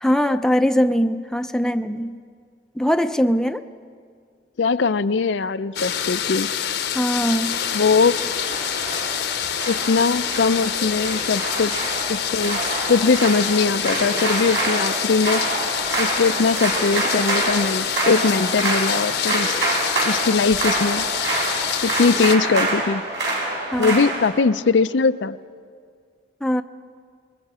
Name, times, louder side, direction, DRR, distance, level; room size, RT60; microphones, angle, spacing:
voice 1, 0.0-2.2 2.8-3.6 6.9-7.6 23.7-24.1 26.4-26.6, equal, 5° left, 8 dB, 0.5 m, -21 dB
voice 2, 4.6-6.5 7.7-8.2 9.7-11.7 12.1-15.4 16.0-19.6 20.0-21.1 21.8-23.0 23.8-25.4, left 4 dB, 80° left, 12 dB, 0.5 m, -20 dB
sound 1, 5.7-22.4, left 9 dB, 65° left, 0.9 m, -26 dB
sound 2, 7.4-24.3, right 2 dB, 65° right, 6.1 m, -27 dB
27.0 x 22.0 x 4.9 m, 2.1 s
head